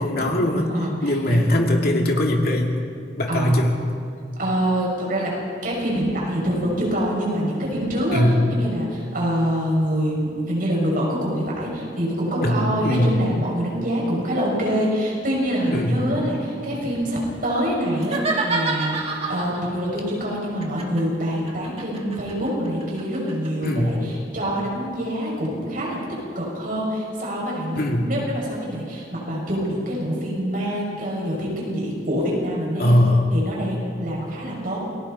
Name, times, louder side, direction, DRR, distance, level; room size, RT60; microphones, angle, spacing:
voice 1, 0.0-0.7 1.0-2.8 3.2-3.7 8.1-8.5 12.4-13.2 15.7-16.0 23.6-24.0 27.8-28.1 32.8-33.3, left 1 dB, 60° left, 1 dB, 2.5 m, -20 dB
voice 2, 0.6-1.5 3.3-3.7 4.4-5.3 5.6-8.2 8.5-26.0 26.3-33.0 33.3-34.8, equal, 55° right, -3 dB, 6.6 m, -25 dB
sound 1, 18.0-19.7 20.6-23.7, right 3 dB, 35° right, 2.3 m, -28 dB
28.5 x 22.0 x 4.3 m, 2.3 s
head